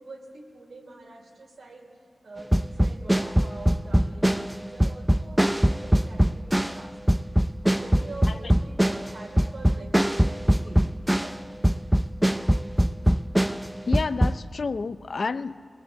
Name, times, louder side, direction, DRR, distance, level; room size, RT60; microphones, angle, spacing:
voice 1, 0.0-1.9 2.2-7.3 7.6-11.5, right 3 dB, 75° right, 2 dB, 3.2 m, -45 dB
sound 1, 2.5-11.4 11.6-14.4, equal, 5° right, 0.5 m, -22 dB
voice 2, 13.9-15.6, left 4 dB, 60° left, 13 dB, 0.6 m, -29 dB
21.0 x 20.5 x 8.1 m, 2.2 s
wide cardioid pair, 90°, 0 cm